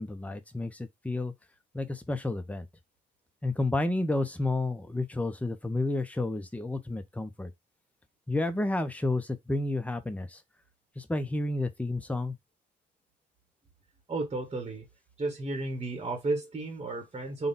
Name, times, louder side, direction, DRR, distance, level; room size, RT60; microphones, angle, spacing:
voice 1, 0.0-1.3 1.7-2.7 3.4-7.5 8.3-10.4 11.0-12.4, left 2 dB, 5° left, 0.7 m, -31 dB
voice 2, 14.1-14.9 15.2-17.5, right 2 dB, 25° right, 1.1 m, -33 dB
3.8 x 2.3 x 3.9 m
cardioid pair, 90°, 20 cm